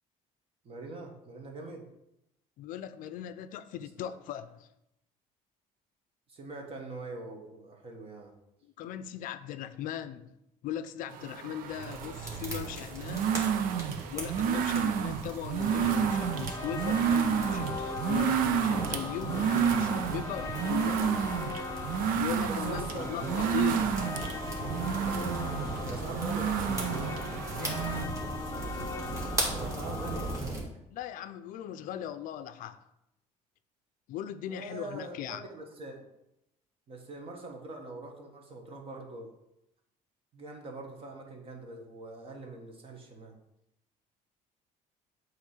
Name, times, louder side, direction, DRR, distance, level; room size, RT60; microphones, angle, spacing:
voice 1, 0.6-1.9 4.0-4.1 6.3-8.3 22.5-23.5 25.8-26.8 29.5-30.6 34.5-36.1 36.9-39.3 40.3-43.4, right 2 dB, 40° right, 1.5 m, -43 dB
voice 2, 2.6-4.7 8.6-10.3 10.6-13.4 14.1-21.5 22.1-24.0 27.5-27.9 30.9-32.9 34.1-35.4, left 11 dB, 70° left, 0.5 m, -39 dB
sound 1, 11.1-28.1, right 8 dB, 80° right, 0.6 m, -30 dB
sound 2, 11.7-30.6, right 2 dB, 20° right, 2.4 m, -39 dB
sound 3, 15.6-30.4, left 5 dB, 20° left, 0.6 m, -40 dB
8.3 x 3.2 x 6.5 m
cardioid pair, 130°, 14 cm